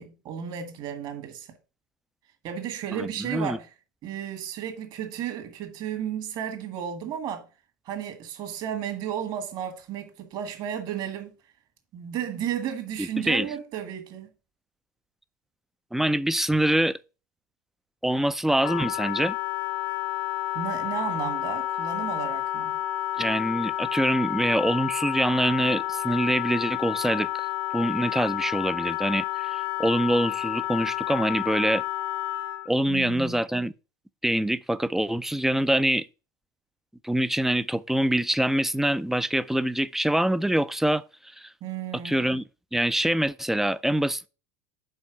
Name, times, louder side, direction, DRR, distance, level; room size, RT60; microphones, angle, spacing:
voice 1, 0.0-1.5 2.4-3.7 4.0-7.5 7.9-11.3 11.9-14.3 20.5-22.7 32.9-33.4 41.6-42.3, right 9 dB, 50° right, 1.8 m, -33 dB
voice 2, 2.9-3.6 13.0-13.5 15.9-17.0 18.0-19.4 23.2-27.5 27.7-31.8 32.7-33.7 34.2-36.1 37.0-41.0 41.4-41.5 42.0-42.4 42.7-44.3, right 1 dB, 5° right, 0.4 m, -25 dB
Wind instrument woodwind instrument, 18.6-32.7, left 14 dB, 90° left, 1.3 m, -30 dB
5.6 x 4.4 x 6.1 m
hypercardioid pair, 80°, 10 cm